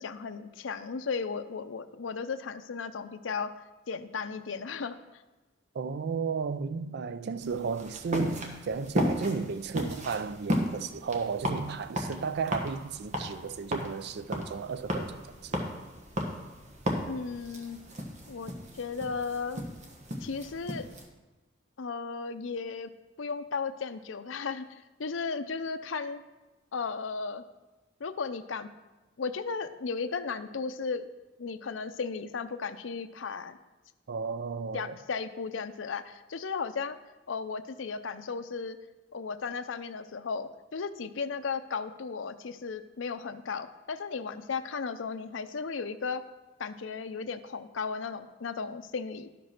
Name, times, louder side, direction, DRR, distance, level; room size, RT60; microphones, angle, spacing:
voice 1, 0.0-3.5 3.9-5.2 17.1-17.8 18.3-19.6 20.2-20.9 21.8-22.9 23.2-26.2 26.7-27.4 28.0-28.7 29.2-31.0 31.4-33.6 34.7-37.0 37.3-38.8 39.1-46.2 46.6-49.3, left 5 dB, 75° left, 0.6 m, -35 dB
voice 2, 5.7-15.1 15.4-15.6 34.1-35.0, right 5 dB, 60° right, 0.4 m, -34 dB
sound 1, 7.4-21.0, equal, 40° right, 1.2 m, -35 dB
12.0 x 5.2 x 5.9 m
head